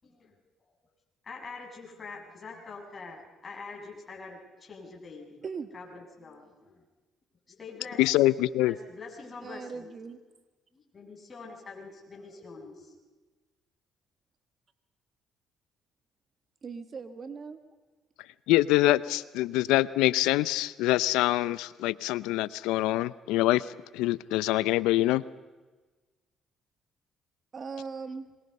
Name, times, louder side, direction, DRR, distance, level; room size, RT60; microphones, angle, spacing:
voice 1, 0.0-0.3 1.2-5.4 5.7-6.8 7.5-9.9 10.7-13.0, left 4 dB, 35° left, -1 dB, 6.9 m, -45 dB
voice 2, 8.0-8.7 18.5-25.2, left 16 dB, 85° left, 18 dB, 0.6 m, -25 dB
voice 3, 9.4-10.2 16.6-17.6 27.5-28.3, right 5 dB, 45° right, 8 dB, 1.9 m, -39 dB
26.5 x 23.0 x 5.5 m, 1.2 s
supercardioid pair, 75°, 0 cm